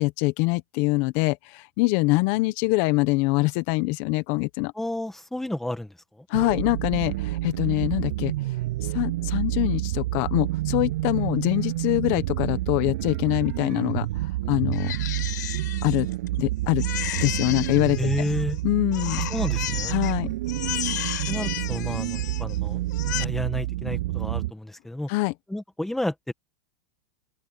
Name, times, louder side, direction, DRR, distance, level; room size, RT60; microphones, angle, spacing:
voice 1, 0.0-4.7 6.3-8.3 8.8-14.9 15.8-16.1 16.4-16.8 17.1-18.1 18.6-19.3 19.9-20.3 25.1-25.3, left 23 dB, 50° left, 1.3 m, -24 dB
voice 2, 4.8-6.3 18.0-18.6 19.3-19.9 21.3-22.8 23.2-25.1 25.5-26.3, left 1 dB, 5° left, 1.7 m, -31 dB
sound 1, 6.3-24.5, right 17 dB, 70° right, 7.8 m, -29 dB
Crying sobbing, 14.7-16.4 16.8-18.6 18.9-20.1 20.5-22.6 22.9-23.2, left 14 dB, 80° left, 7.6 m, -33 dB
open air
supercardioid pair, 140°, 10 cm